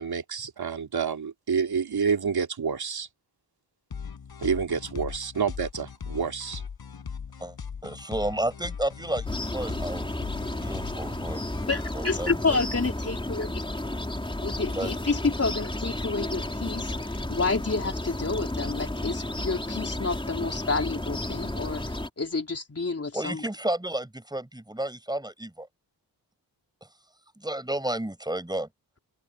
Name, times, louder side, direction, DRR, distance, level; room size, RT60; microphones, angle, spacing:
voice 1, 0.0-3.1 4.4-6.6, right 6 dB, 65° right, 3.5 m, -28 dB
sound 1, 3.9-12.3, left 6 dB, 65° left, 5.6 m, -39 dB
voice 2, 7.8-9.2 9.5-10.0 10.6-11.4 11.9-12.6 14.7-14.9 23.1-25.7 27.4-28.7, right 1 dB, 10° right, 6.7 m, -31 dB
sound 2, 9.2-22.1, left 1 dB, 10° left, 3.8 m, -32 dB
voice 3, 11.7-13.6 14.4-21.8 22.2-23.4, left 3 dB, 35° left, 4.2 m, -29 dB
open air
wide cardioid pair, 95°, 40 cm